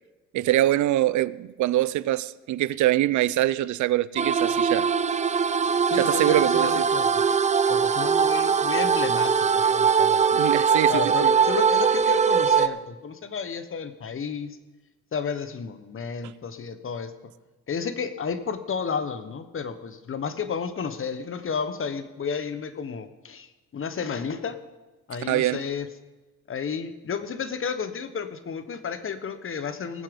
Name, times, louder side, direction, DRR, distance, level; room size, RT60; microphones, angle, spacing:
voice 1, 0.3-4.9 5.9-6.8 10.3-11.3 25.3-25.6, right 14 dB, 70° right, 0.5 m, -24 dB
sound 1, 4.2-12.7, right 6 dB, 25° right, 0.5 m, -21 dB
voice 2, 5.9-7.2 7.7-10.2 10.9-14.6 15.1-17.3 17.7-24.6 25.1-25.9 26.5-30.0, left 6 dB, 45° left, 1.2 m, -32 dB
19.5 x 7.4 x 5.3 m
cardioid pair, 90°, 30 cm